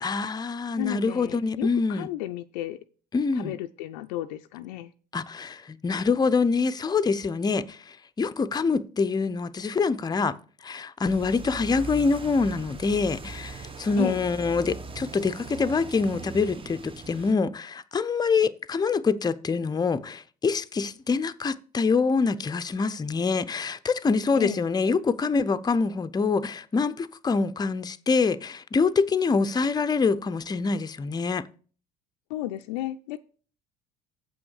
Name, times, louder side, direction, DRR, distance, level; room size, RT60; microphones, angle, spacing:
voice 1, 0.0-2.1 3.1-3.5 5.1-10.4 10.6-31.5, left 4 dB, 20° left, 0.6 m, -25 dB
voice 2, 0.8-2.8 3.3-4.9 14.0-14.2 24.4-24.6 32.3-33.2, left 14 dB, 85° left, 0.4 m, -33 dB
sound 1, 11.1-17.3, right 4 dB, 25° right, 1.0 m, -40 dB
7.7 x 6.0 x 6.4 m
hypercardioid pair, 70°, 20 cm